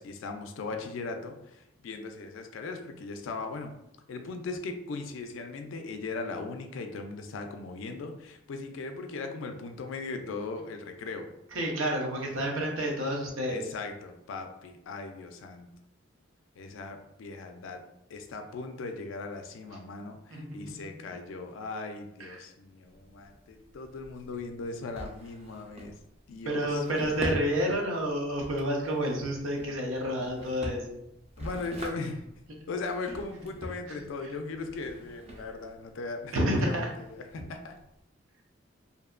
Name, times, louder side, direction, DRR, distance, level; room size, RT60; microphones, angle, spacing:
voice 1, 0.0-3.7 4.1-11.3 13.5-15.7 16.6-17.8 18.1-25.9 26.3-26.8 31.4-32.2 32.7-36.3 36.6-37.8, left 3 dB, 70° left, 6 dB, 0.3 m, -38 dB
voice 2, 11.5-13.7 20.3-20.9 22.2-22.4 26.4-31.0 33.9-34.3 36.3-36.9, equal, 80° right, 0 dB, 0.6 m, -30 dB
Drawer open or close, 22.8-38.0, equal, 30° right, 0.4 m, -44 dB
2.6 x 2.1 x 2.3 m, 0.85 s
head